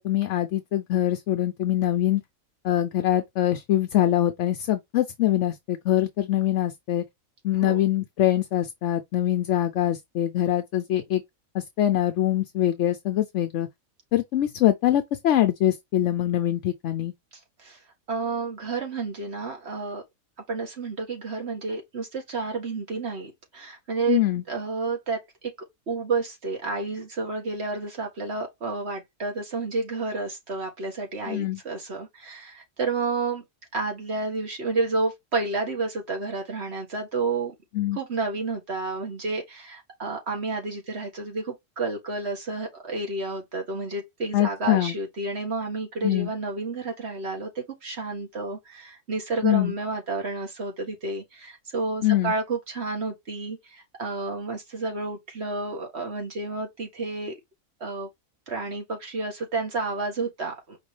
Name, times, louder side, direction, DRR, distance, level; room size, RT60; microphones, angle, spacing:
voice 1, 0.0-2.2 2.6-7.0 7.4-11.2 11.5-13.7 14.1-17.1 24.1-24.4 31.3-31.6 37.7-38.0 44.3-45.0 46.0-46.3 49.4-49.7 52.0-52.3, left 12 dB, 65° left, 0.8 m, -23 dB
voice 2, 18.1-20.0 20.5-24.2 24.5-25.5 25.9-33.4 33.7-37.5 37.9-57.3 57.8-58.1 58.5-60.8, right 3 dB, 50° right, 1.9 m, -30 dB
5.1 x 3.0 x 3.1 m
omnidirectional pair, 1.5 m